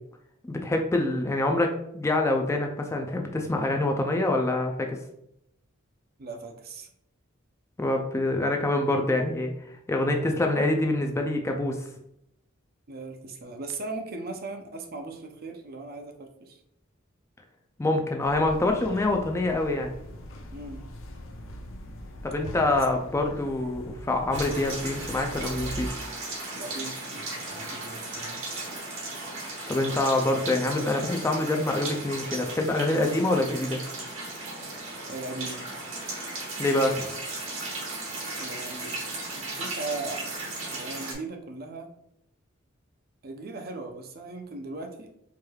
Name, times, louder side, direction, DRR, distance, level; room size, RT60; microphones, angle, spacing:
voice 1, 0.4-5.0 7.8-9.5 9.9-11.9 17.8-19.9 22.2-26.0 29.7-33.8 36.6-36.9, left 2 dB, 15° left, 3 dB, 0.3 m, -26 dB
voice 2, 6.2-6.9 12.9-16.6 20.5-20.8 22.6-22.8 26.5-28.4 30.6-30.7 35.1-35.6 38.4-38.9 39.4-40.4 40.7-41.9 43.2-45.1, right 3 dB, 50° right, 4 dB, 0.5 m, -38 dB
sound 1, 18.2-25.9, equal, 70° left, 0.6 m, -41 dB
sound 2, 24.3-41.1, right 2 dB, 70° right, 1.2 m, -36 dB
4.6 x 3.2 x 2.3 m, 0.77 s
head